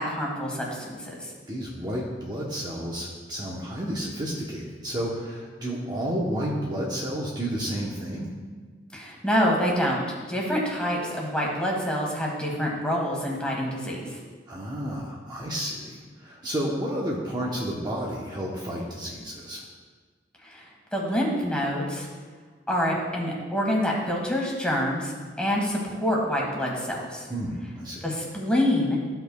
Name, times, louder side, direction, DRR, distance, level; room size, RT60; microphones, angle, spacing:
voice 1, 0.0-1.3 8.9-10.0 10.3-14.2 20.4-20.6 20.9-22.1 22.7-25.1 25.4-27.3 28.0-29.0, equal, 5° left, -2 dB, 1.6 m, -26 dB
voice 2, 1.5-8.3 14.5-19.6 27.3-28.1, equal, 25° right, -4 dB, 0.9 m, -31 dB
13.5 x 5.5 x 2.3 m, 1.5 s
head